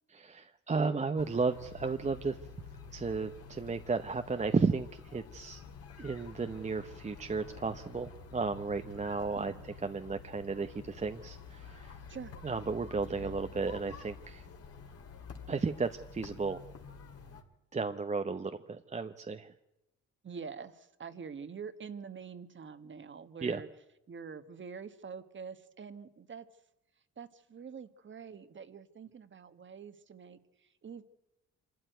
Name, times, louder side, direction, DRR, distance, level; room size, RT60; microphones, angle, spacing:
voice 1, 0.1-2.4 2.9-5.6 6.0-9.5 9.8-12.0 12.4-14.4 15.5-16.6 17.7-19.5 23.4-23.6, right 4 dB, 25° right, 7 dB, 0.8 m, -34 dB
sound 1, 1.2-17.4, left 5 dB, 50° left, 2.4 m, -49 dB
voice 2, 9.3-9.7 12.1-12.3 13.2-13.3 20.2-23.7 24.1-26.5 27.2-31.0, right 6 dB, 40° right, 11 dB, 1.4 m, -46 dB
25.5 x 12.5 x 9.2 m, 0.95 s
cardioid pair, 90°, 30 cm